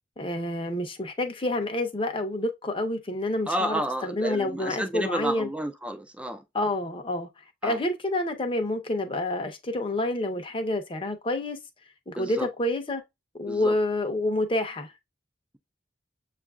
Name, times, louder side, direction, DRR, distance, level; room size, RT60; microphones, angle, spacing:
voice 1, 0.2-5.5 6.5-7.3 7.6-11.6 12.1-13.0 13.4-14.9, left 1 dB, 25° left, 0.7 m, -28 dB
voice 2, 3.5-6.4 7.6-7.8 12.2-12.5 13.5-13.7, right 1 dB, 5° right, 0.4 m, -31 dB
7.4 x 2.5 x 2.3 m
head